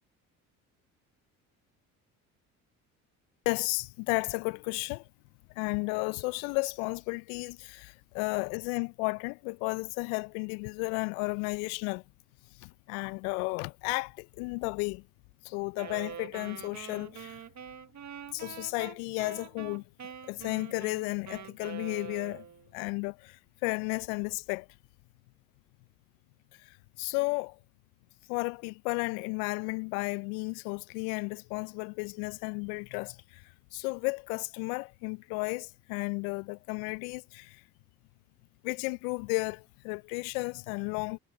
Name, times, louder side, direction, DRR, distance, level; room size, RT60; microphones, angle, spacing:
voice 1, 3.4-5.0 5.6-12.0 12.6-15.0 15.4-17.4 18.3-19.8 20.3-22.4 22.7-23.4 23.6-24.7 27.0-27.5 28.3-33.4 33.7-37.6 38.6-41.2, left 31 dB, 70° left, 0.9 m, -33 dB
Wind instrument woodwind instrument, 15.7-22.7, right 8 dB, 40° right, 1.6 m, -45 dB
hypercardioid pair, 60°, 43 cm